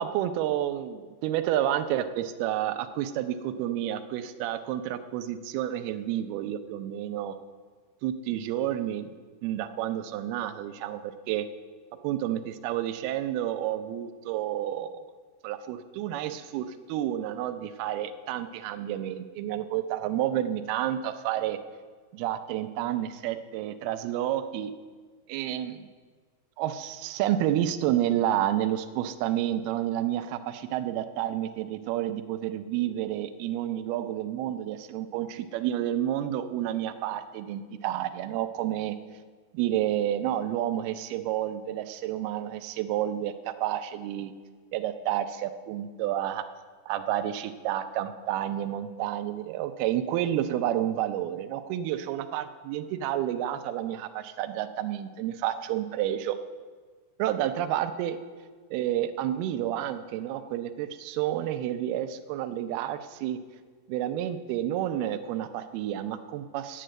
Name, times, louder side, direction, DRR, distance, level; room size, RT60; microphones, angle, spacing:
voice 1, 0.0-7.4 8.0-9.1 9.4-11.5 12.0-15.1 15.4-21.6 22.1-24.7 25.3-25.9 26.6-39.0 39.5-44.3 44.7-46.5 46.9-56.4 57.2-58.2 58.7-63.4 63.9-66.8, right 12 dB, 80° right, 10 dB, 2.5 m, -30 dB
9.1 x 7.8 x 7.5 m, 1.5 s
omnidirectional pair, 4.6 m